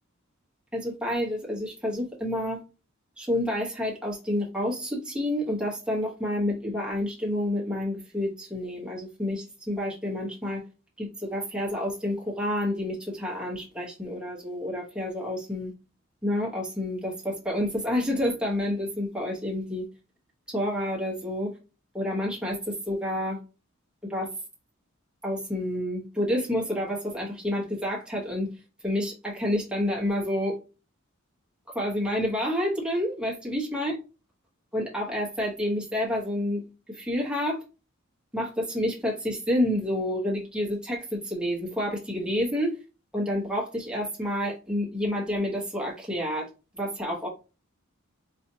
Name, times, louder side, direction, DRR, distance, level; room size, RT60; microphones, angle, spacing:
voice 1, 0.7-2.6 3.2-10.6 11.0-15.7 16.2-19.9 20.5-21.5 21.9-23.4 24.1-24.3 25.2-28.5 28.8-30.6 31.7-33.9 34.7-36.6 36.9-37.6 38.3-42.8 43.1-46.5 46.7-47.3, left 1 dB, 5° right, -4 dB, 1.0 m, -29 dB
4.2 x 2.4 x 2.8 m, 0.31 s
head